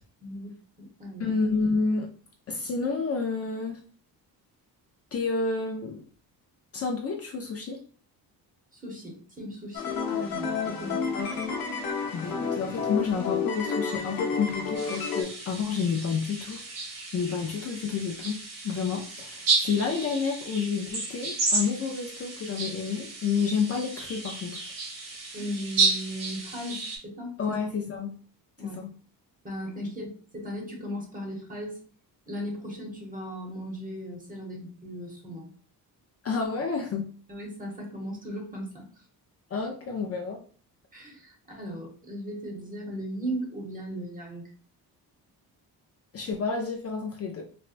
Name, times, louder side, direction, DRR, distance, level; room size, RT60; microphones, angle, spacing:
voice 1, 0.2-1.3 8.7-11.0 25.3-27.6 28.6-28.8 29.4-31.8 32.3-35.5 37.3-39.0 40.9-44.5, equal, 20° right, 0 dB, 1.0 m, -37 dB
voice 2, 1.2-2.1 2.5-3.8 5.1-6.0 6.7-7.8 11.1-11.4 12.1-16.6 17.1-18.4 18.6-24.6 27.4-28.1 28.7-28.9 36.2-37.1 39.5-40.4 46.1-47.5, left 5 dB, 40° left, 1 dB, 0.4 m, -29 dB
sound 1, 9.7-15.2, left 5 dB, 65° left, 0.8 m, -30 dB
sound 2, 14.7-27.0, right 3 dB, 60° right, 1.4 m, -32 dB
4.2 x 2.2 x 2.4 m, 0.43 s
cardioid pair, 150°, 38 cm